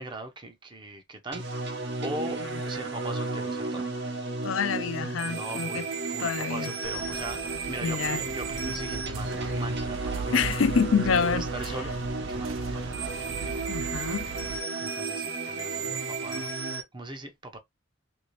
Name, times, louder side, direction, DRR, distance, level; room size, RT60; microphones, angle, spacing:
voice 1, 0.0-1.7 2.0-4.2 5.3-7.4 7.7-10.5 11.1-11.9 12.3-12.9 14.8-16.5 16.9-17.6, right 2 dB, 25° right, 0.6 m, -39 dB
sound 1, 1.3-16.8, right 3 dB, 60° right, 0.9 m, -33 dB
voice 2, 4.4-5.8 6.2-6.7 7.8-8.2 10.3-11.5 13.7-14.3, left 6 dB, 80° left, 0.4 m, -27 dB
sound 2, 6.8-14.6, right 5 dB, 80° right, 0.5 m, -38 dB
2.9 x 2.7 x 3.0 m
head